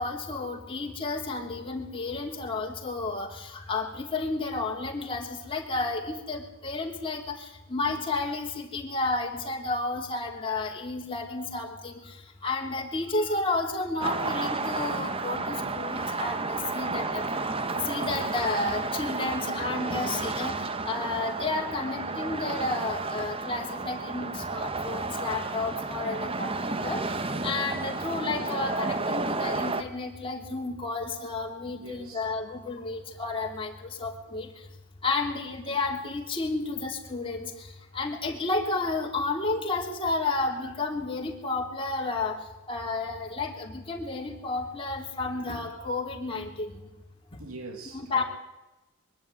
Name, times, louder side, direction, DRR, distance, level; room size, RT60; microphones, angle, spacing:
voice 1, 0.0-12.1 12.4-17.2 17.7-20.5 20.9-27.1 27.4-34.5 35.0-42.4 42.7-46.9 47.3-47.4 47.9-48.2, left 3 dB, 25° left, 3.4 m, -31 dB
sound 1, 14.0-29.8, right 3 dB, 25° right, 1.0 m, -32 dB
voice 2, 31.8-32.3 47.4-48.2, right 3 dB, 70° right, 2.0 m, -42 dB
23.0 x 12.5 x 9.9 m
head